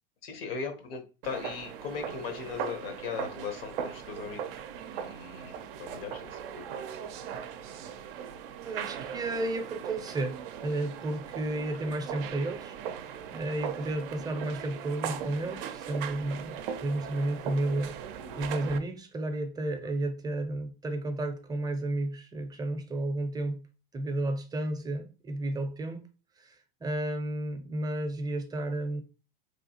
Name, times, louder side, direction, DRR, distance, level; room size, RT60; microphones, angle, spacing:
voice 1, 0.2-4.6 4.9-6.6 19.8-19.9, left 6 dB, 75° left, 1.0 m, -39 dB
sound 1, 1.2-18.8, right 8 dB, 65° right, 0.4 m, -39 dB
voice 2, 8.6-18.0 18.4-23.6 23.9-26.1 26.4-29.0, right 1 dB, 15° right, 0.5 m, -32 dB
3.0 x 2.4 x 2.8 m
hypercardioid pair, 90°, 29 cm